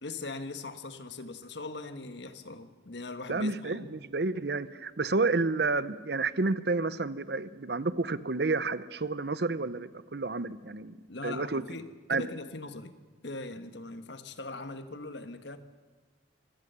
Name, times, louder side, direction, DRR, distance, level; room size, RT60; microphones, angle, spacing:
voice 1, 0.0-3.9 11.1-13.0 13.2-15.6, left 2 dB, 65° left, 9 dB, 1.4 m, -40 dB
voice 2, 3.3-11.0 11.2-11.6 12.1-12.3, right 3 dB, 55° right, 16 dB, 0.7 m, -30 dB
25.5 x 17.0 x 6.8 m, 1.3 s
head